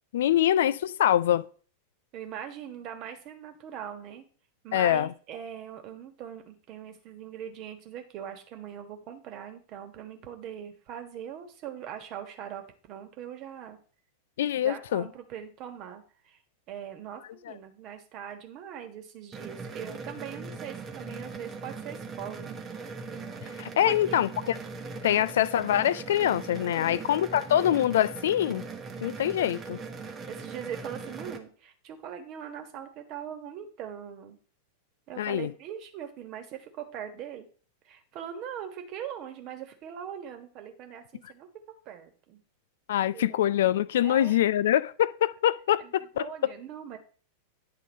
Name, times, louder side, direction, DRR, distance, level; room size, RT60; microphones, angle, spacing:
voice 1, 0.1-1.4 4.7-5.1 14.4-15.1 23.6-24.6 25.0-28.7 29.0-29.8 35.2-35.5 42.9-46.3, left 11 dB, 60° left, 0.3 m, -24 dB
voice 2, 2.1-4.2 4.6-13.8 14.6-16.4 16.7-22.6 23.8-24.3 26.7-27.5 30.3-34.4 35.1-37.5 37.8-41.5 41.8-42.4 43.1-43.5 44.0-44.4 45.8-47.0, right 9 dB, 40° right, 1.4 m, -41 dB
sound 1, 19.3-31.4, right 4 dB, 25° right, 1.0 m, -40 dB
9.7 x 3.8 x 5.2 m
figure-of-eight pair, 90°, 0 cm